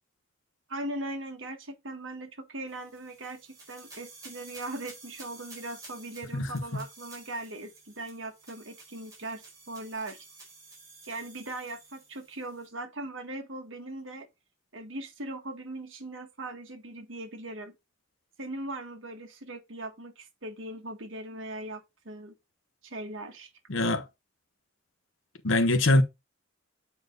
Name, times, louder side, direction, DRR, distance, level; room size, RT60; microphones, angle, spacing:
voice 1, 0.7-10.2 11.1-14.3 14.7-17.7 18.4-22.3 22.8-23.5, right 2 dB, 70° right, 1.6 m, -39 dB
sound 1, 2.7-12.7, right 3 dB, 15° right, 4.4 m, -51 dB
voice 2, 6.3-6.8 23.7-24.0 25.4-26.0, left 2 dB, 70° left, 1.0 m, -24 dB
8.0 x 4.5 x 3.9 m
head